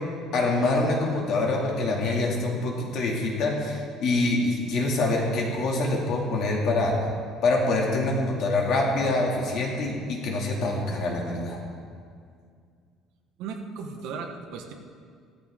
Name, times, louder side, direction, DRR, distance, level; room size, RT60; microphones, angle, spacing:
voice 1, 0.3-6.9 7.4-11.6, left 2 dB, 50° left, -1 dB, 2.4 m, -25 dB
voice 2, 13.4-14.7, right 5 dB, 70° right, 4 dB, 1.4 m, -36 dB
15.5 x 13.5 x 3.7 m, 2.1 s
cardioid pair, 170°, 0 cm